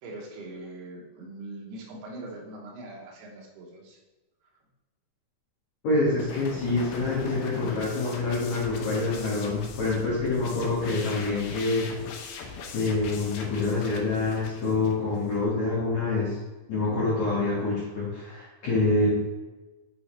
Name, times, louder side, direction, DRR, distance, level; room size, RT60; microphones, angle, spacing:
voice 1, 0.0-4.0, right 2 dB, 80° right, -1 dB, 3.2 m, -42 dB
voice 2, 5.8-11.8 12.4-16.4 16.7-19.1, left 3 dB, 50° left, -9 dB, 2.5 m, -26 dB
sound 1, 6.2-15.5, left 4 dB, 90° left, 2.8 m, -41 dB
8.5 x 4.1 x 3.3 m, 1.2 s
omnidirectional pair, 4.5 m